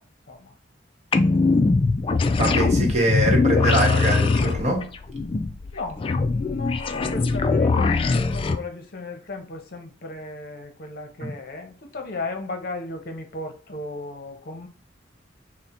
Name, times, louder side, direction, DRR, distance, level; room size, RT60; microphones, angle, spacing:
sound 1, 1.1-8.6, left 3 dB, 30° left, 0.3 m, -21 dB
voice 1, 1.2-1.5 2.5-3.3 5.7-14.7, left 2 dB, 55° left, 0.7 m, -36 dB
voice 2, 2.4-4.9 11.2-11.3, right 1 dB, 35° right, 1.0 m, -23 dB
3.8 x 2.1 x 4.3 m
head